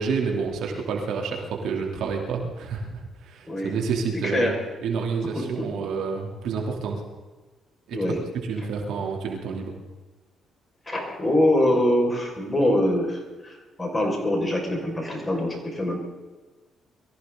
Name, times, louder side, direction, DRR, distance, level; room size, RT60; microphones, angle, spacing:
voice 1, 0.0-4.5 4.8-7.0 7.9-8.0 8.4-9.7, right 5 dB, 80° right, 1 dB, 3.3 m, -29 dB
voice 2, 4.2-4.6 5.3-5.5 7.9-8.2 10.9-16.0, left 1 dB, 15° left, 0 dB, 5.7 m, -24 dB
23.5 x 15.0 x 4.0 m, 1.3 s
cardioid pair, 90°, 0 cm